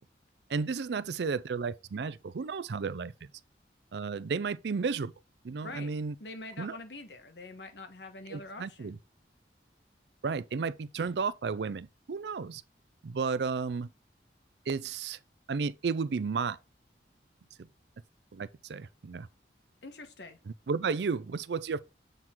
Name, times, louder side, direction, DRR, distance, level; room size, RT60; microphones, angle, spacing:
voice 1, 0.5-3.3 3.9-5.1 5.4-6.1 6.6-6.8 8.3-9.0 10.2-12.6 13.0-13.9 14.7-15.2 15.5-16.6 17.6-17.7 18.3-19.3 20.5-21.8, right 5 dB, 75° right, 0.4 m, -33 dB
voice 2, 6.2-9.0 19.8-20.4, left 2 dB, 80° left, 1.3 m, -45 dB
7.8 x 3.8 x 4.4 m
head